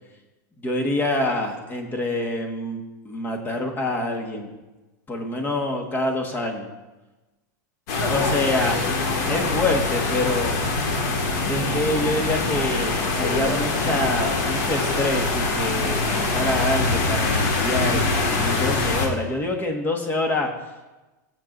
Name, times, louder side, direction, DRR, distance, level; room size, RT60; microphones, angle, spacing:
voice 1, 0.6-4.5 5.1-6.7 8.1-8.8 9.3-10.5 11.5-20.5, left 2 dB, 20° left, 2 dB, 1.7 m, -26 dB
sound 1, 7.9-19.1, left 3 dB, 60° left, 2.0 m, -24 dB
17.5 x 7.5 x 2.7 m, 1.1 s
supercardioid pair, 135°, 10 cm